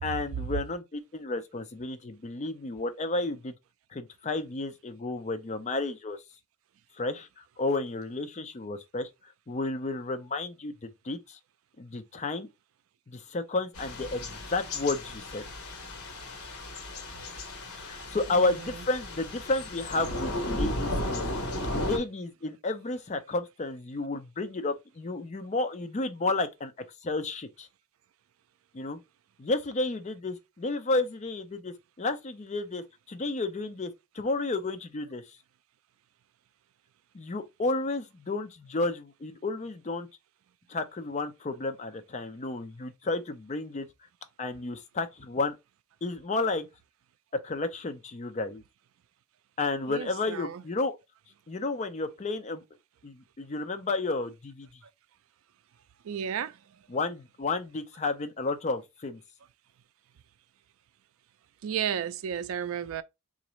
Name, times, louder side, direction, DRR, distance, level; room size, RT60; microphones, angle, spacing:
voice 1, 0.0-3.5 3.9-6.2 7.0-11.4 11.8-12.5 13.1-15.5 17.7-21.3 21.7-26.7 27.0-27.7 28.7-29.0 29.4-35.2 37.1-40.1 40.7-43.9 44.4-45.6 46.0-46.7 47.3-48.6 49.6-51.0 51.5-52.6 53.0-54.7 56.9-59.2, left 3 dB, 30° left, 0.5 m, -32 dB
Thunder / Rain, 13.7-22.0, left 1 dB, 80° left, 0.9 m, -35 dB
voice 2, 18.3-18.7 49.9-50.6 56.0-56.6 61.6-63.0, right 8 dB, 65° right, 0.3 m, -33 dB
3.9 x 2.5 x 3.0 m
head